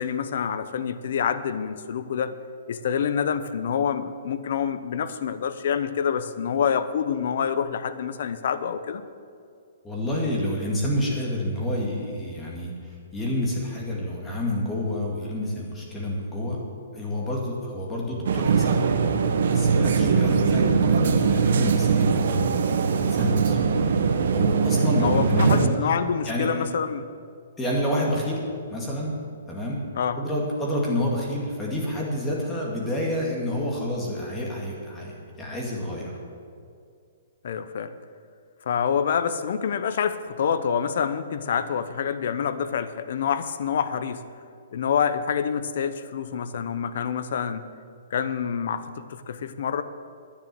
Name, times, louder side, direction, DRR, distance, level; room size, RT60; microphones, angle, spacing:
voice 1, 0.0-2.3 2.7-9.0 25.0-27.1 29.9-30.2 37.4-37.9 38.7-44.2 44.7-47.6 48.1-49.8, left 7 dB, 55° left, 12 dB, 0.8 m, -27 dB
voice 2, 9.8-16.6 16.9-18.8 19.5-23.6 24.3-25.7 26.3-26.7 27.6-28.4 28.7-29.2 29.5-29.8 30.2-36.1, left 1 dB, 10° left, -3 dB, 2.2 m, -28 dB
sound 1, 18.3-25.7, right 5 dB, 65° right, 1.1 m, -21 dB
10.5 x 9.6 x 7.6 m, 2.3 s
hypercardioid pair, 165°, 0 cm